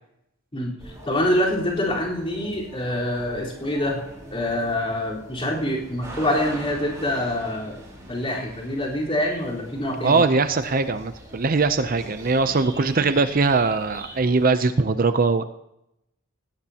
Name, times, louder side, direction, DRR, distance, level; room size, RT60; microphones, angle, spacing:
sound 1, 0.8-14.5, right 1 dB, 15° right, 4.1 m, -42 dB
voice 1, 1.0-4.0 4.3-7.8 8.1-10.2, left 1 dB, 30° left, -4 dB, 4.2 m, -25 dB
voice 2, 10.0-15.4, right 4 dB, 45° right, 10 dB, 0.6 m, -21 dB
18.0 x 17.0 x 2.9 m, 0.81 s
head